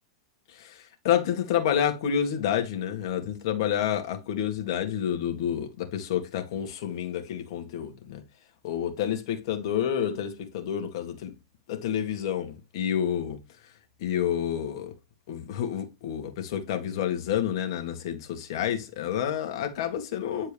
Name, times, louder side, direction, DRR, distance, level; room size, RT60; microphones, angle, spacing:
voice 1, 0.5-8.2 8.6-11.3 11.7-13.4 14.0-14.9 15.3-20.5, left 9 dB, 60° left, 2.0 m, -29 dB
10.0 x 4.4 x 3.5 m
hypercardioid pair, 135°, 3 cm